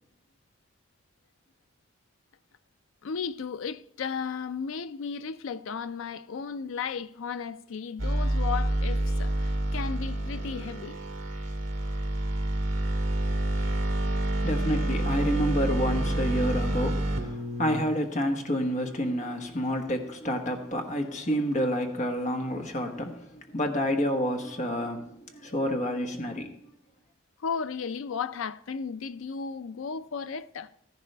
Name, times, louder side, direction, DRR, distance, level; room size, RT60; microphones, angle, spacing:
voice 1, 3.0-11.0 27.4-30.7, left 6 dB, 80° left, 0.4 m, -35 dB
sound 1, 8.0-17.8, right 1 dB, 70° right, 1.6 m, -28 dB
voice 2, 14.0-26.6, equal, 35° left, 1.2 m, -29 dB
13.5 x 10.5 x 3.3 m
head